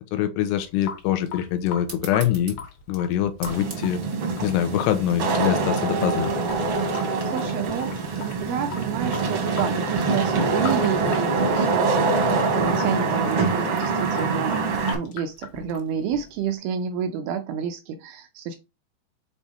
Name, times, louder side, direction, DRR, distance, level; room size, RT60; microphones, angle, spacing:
voice 1, 0.0-2.6 2.9-4.0 4.4-6.3, left 11 dB, 80° left, 2.8 m, -24 dB
Water tap faucet / Sink (filling or washing) / Drip, 0.6-16.5, left 7 dB, 65° left, 2.9 m, -40 dB
sound 1, 1.8-6.9, right 2 dB, 40° right, 0.7 m, -44 dB
Wind / Rain, 3.5-14.9, right 4 dB, 60° right, 1.5 m, -24 dB
voice 2, 7.0-18.6, right 8 dB, 80° right, 2.2 m, -30 dB
7.3 x 4.2 x 3.4 m
omnidirectional pair, 5.0 m